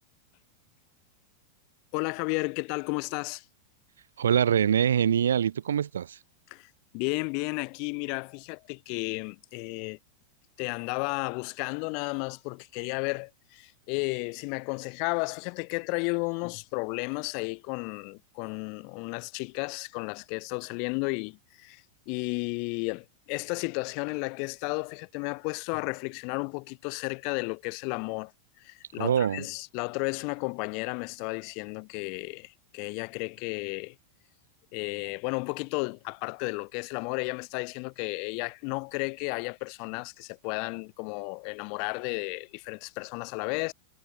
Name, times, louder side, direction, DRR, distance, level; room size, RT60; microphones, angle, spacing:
voice 1, 1.9-3.4 6.5-10.0 10.6-28.3 28.6-34.0 34.7-43.7, left 38 dB, 45° left, 7.7 m, -33 dB
voice 2, 4.2-6.2 29.0-29.4, right 9 dB, 65° right, 3.2 m, -24 dB
figure-of-eight pair, 90°, 0 cm